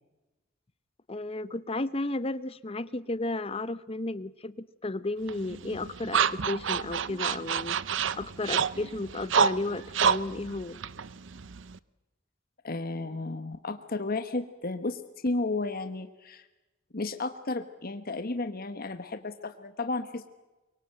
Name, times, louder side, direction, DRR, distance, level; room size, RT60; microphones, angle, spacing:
voice 1, 1.1-7.8 8.1-10.8, left 2 dB, 30° left, 15 dB, 0.9 m, -33 dB
sound 1, 5.3-11.8, right 6 dB, 65° right, 0.7 m, -29 dB
voice 2, 12.6-16.4 16.9-20.3, left 3 dB, 50° left, 8 dB, 1.2 m, -33 dB
24.5 x 23.0 x 7.8 m, 1.1 s
head